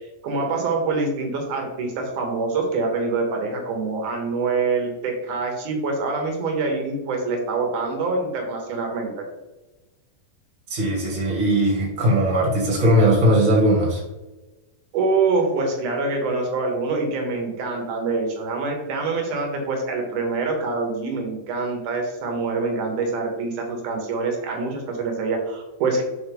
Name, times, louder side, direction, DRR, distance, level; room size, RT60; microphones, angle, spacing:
voice 1, 0.2-9.3 14.9-26.0, right 3 dB, 65° right, 2 dB, 2.4 m, -25 dB
voice 2, 10.7-14.0, right 1 dB, 30° right, -3 dB, 1.8 m, -19 dB
7.4 x 3.9 x 5.3 m, 1.1 s
omnidirectional pair, 4.3 m